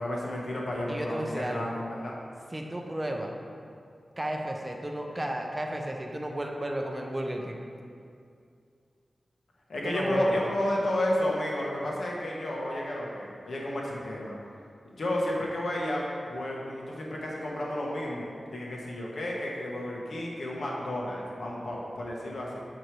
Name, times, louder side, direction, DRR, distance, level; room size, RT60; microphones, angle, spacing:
voice 1, 0.0-2.1 9.7-14.4 14.8-16.0 16.3-22.6, left 1 dB, 75° left, -3 dB, 1.3 m, -32 dB
voice 2, 0.9-1.7 2.5-3.3 4.2-7.6 9.8-10.4, right 1 dB, 20° right, 1 dB, 0.8 m, -33 dB
6.7 x 4.7 x 4.6 m, 2.4 s
wide cardioid pair, 85°, 0 cm